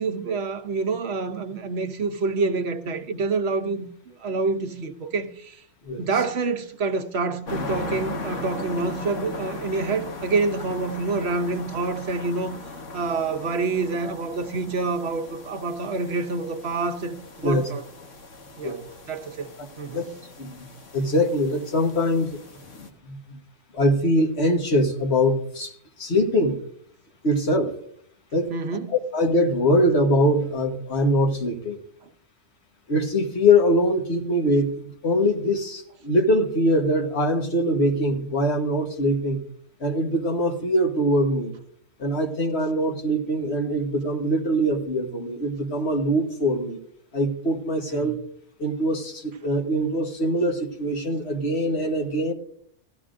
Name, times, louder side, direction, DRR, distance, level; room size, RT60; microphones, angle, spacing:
voice 1, 0.0-5.6 6.0-12.6 12.9-17.8 18.6-18.8 19.1-19.5 19.8-20.1 28.5-28.9 47.9-48.2, right 3 dB, 60° right, 1.0 m, -27 dB
sound 1, 7.5-22.9, left 2 dB, 75° left, 1.8 m, -38 dB
voice 2, 20.9-22.3 23.0-23.2 23.7-25.7 26.0-26.6 27.2-27.7 28.3-28.5 28.9-31.8 32.9-39.4 39.8-41.5 42.0-46.8 47.1-48.1 48.6-52.3, equal, 60° left, 1.6 m, -23 dB
16.5 x 13.0 x 2.5 m
omnidirectional pair, 1.3 m